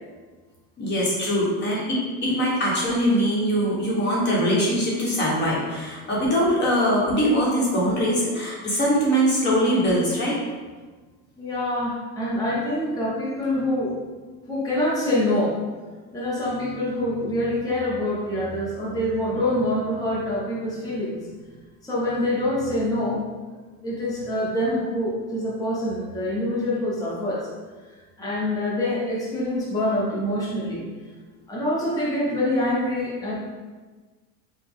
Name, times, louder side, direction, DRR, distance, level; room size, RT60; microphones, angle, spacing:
voice 1, 0.8-10.4, equal, 30° left, -4 dB, 1.2 m, -22 dB
voice 2, 11.4-13.9 14.5-15.6 16.1-21.2 21.8-23.2 23.8-27.5 28.2-30.8 31.5-33.4, left 1 dB, 10° left, -7 dB, 0.8 m, -25 dB
5.1 x 2.3 x 3.6 m, 1.4 s
cardioid pair, 165°, 33 cm